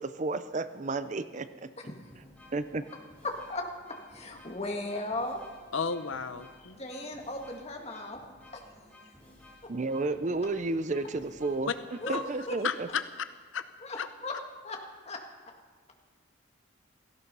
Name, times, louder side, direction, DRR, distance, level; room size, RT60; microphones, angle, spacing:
voice 1, 0.0-1.7 2.5-2.8 9.7-11.7 12.1-12.9, right 3 dB, 35° right, 12 dB, 0.5 m, -32 dB
sound 1, 2.0-12.7, left 1 dB, 5° left, 4.2 m, -56 dB
voice 2, 3.2-3.6 4.1-5.4 6.8-8.2 8.5-8.6 12.0-12.2 12.5-12.6 13.8-14.3 14.6-14.8 15.1-15.2, left 2 dB, 30° left, 2 dB, 1.8 m, -36 dB
voice 3, 5.7-6.8 11.7-11.8 12.1-12.2 12.6-13.0 13.5-13.6 14.0-14.1, left 6 dB, 75° left, 11 dB, 0.7 m, -32 dB
17.5 x 15.0 x 5.5 m, 1.5 s
head